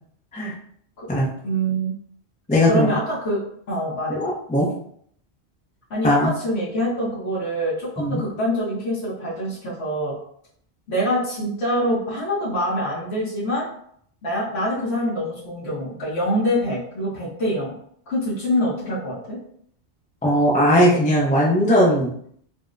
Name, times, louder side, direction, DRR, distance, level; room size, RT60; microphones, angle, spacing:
voice 1, 1.4-1.9 2.7-3.4 3.7-4.3 5.9-10.1 10.9-13.7 14.2-17.7 18.1-19.4, equal, 75° left, -8 dB, 1.3 m, -25 dB
voice 2, 2.5-3.0 4.2-4.7 6.0-6.3 8.0-8.2 20.2-22.1, equal, 10° left, -3 dB, 0.4 m, -18 dB
4.0 x 2.1 x 2.5 m, 0.65 s
omnidirectional pair, 1.1 m